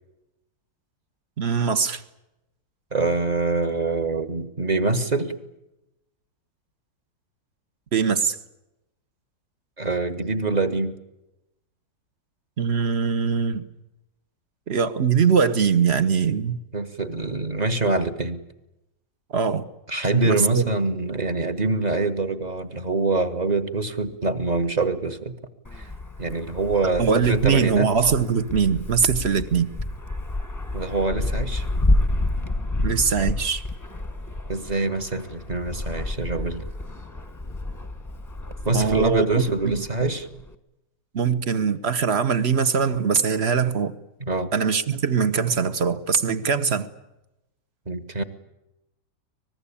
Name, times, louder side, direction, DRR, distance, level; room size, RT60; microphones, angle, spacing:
voice 1, 1.4-2.0 7.9-8.4 12.6-13.6 14.7-16.6 19.3-19.6 20.2-20.7 27.0-29.7 32.8-33.6 38.7-39.3 39.6-39.8 41.1-43.9 44.5-46.9, right 6 dB, 40° right, 13 dB, 1.3 m, -22 dB
voice 2, 2.9-5.3 9.8-11.0 16.7-18.4 19.9-25.4 25.7-25.9 26.2-27.9 30.7-31.7 34.5-36.6 38.6-40.3 44.2-44.5 47.9-48.2, right 3 dB, 25° right, 8 dB, 1.4 m, -25 dB
Wind, 25.6-40.5, left 2 dB, 10° left, 1.2 m, -29 dB
24.5 x 20.0 x 8.6 m, 0.92 s
omnidirectional pair, 2.0 m